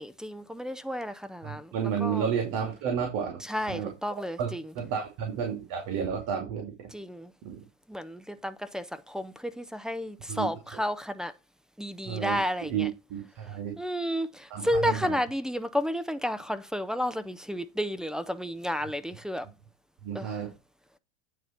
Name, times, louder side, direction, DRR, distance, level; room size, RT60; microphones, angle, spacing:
voice 1, 0.0-1.7 2.0-2.3 3.4-4.6 6.9-7.3 7.9-11.3 11.8-12.9 13.8-19.5 20.1-20.4, equal, ahead, 0.5 m, -32 dB
voice 2, 1.4-3.4 3.7-3.9 4.4-6.9 7.4-7.6 10.3-10.8 12.1-13.8 14.5-15.2 20.0-20.5, right 7 dB, 55° right, 2.6 m, -32 dB
9.2 x 4.1 x 5.8 m
supercardioid pair, 130°, 37 cm